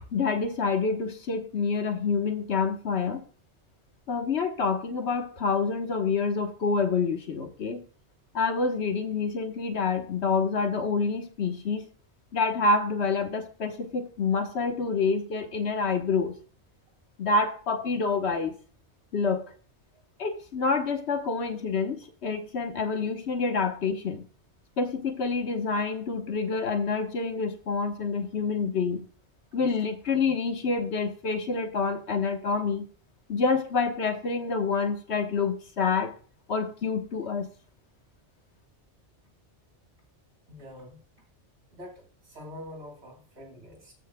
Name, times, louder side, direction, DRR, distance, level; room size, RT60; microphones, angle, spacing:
voice 1, 0.1-3.2 4.1-7.8 8.3-11.8 12.3-16.3 17.2-18.5 19.1-19.5 20.2-24.2 24.8-29.0 29.5-32.8 33.3-36.1 36.5-37.5, left 4 dB, 70° left, 1.4 m, -27 dB
voice 2, 40.5-41.0 41.7-43.9, left 1 dB, 70° right, 3.0 m, -45 dB
14.0 x 6.4 x 2.2 m
omnidirectional pair, 1.2 m